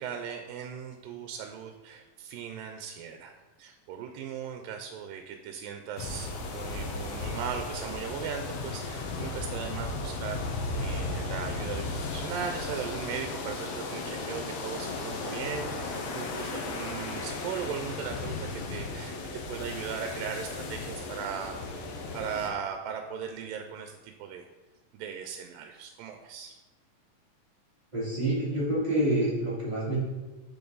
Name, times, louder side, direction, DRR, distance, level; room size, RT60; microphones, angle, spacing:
voice 1, 0.0-3.3 3.6-21.6 22.1-24.5 24.9-26.6, right 7 dB, 90° right, 5 dB, 2.3 m, -38 dB
sound 1, 6.0-22.5, left 3 dB, 80° left, 2.5 m, -35 dB
voice 2, 27.9-30.0, right 1 dB, 15° right, -9 dB, 2.3 m, -27 dB
6.8 x 6.5 x 3.9 m, 1.1 s
omnidirectional pair, 3.9 m